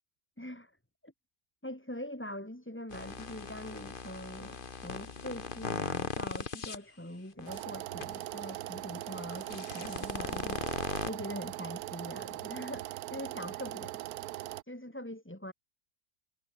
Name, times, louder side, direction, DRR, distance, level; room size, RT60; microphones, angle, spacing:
voice 1, 0.4-0.7 1.0-1.1 1.6-14.1 14.7-15.5, left 1 dB, 10° left, 2.7 m, -43 dB
sound 1, 2.9-6.8 7.4-7.6 8.0-8.1 9.3-11.1, left 5 dB, 40° left, 1.3 m, -38 dB
sound 2, 7.5-14.6, right 15 dB, 90° right, 1.1 m, -40 dB
omnidirectional pair, 1.5 m